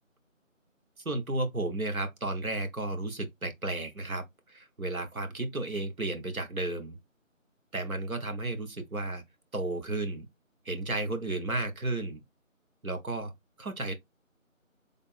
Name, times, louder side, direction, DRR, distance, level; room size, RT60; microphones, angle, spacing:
voice 1, 1.0-7.0 7.7-9.2 9.5-10.3 10.6-12.2 12.8-13.3 13.6-13.9, right 2 dB, 90° right, 1.2 m, -33 dB
3.5 x 2.0 x 4.2 m
figure-of-eight pair, 180°, 41 cm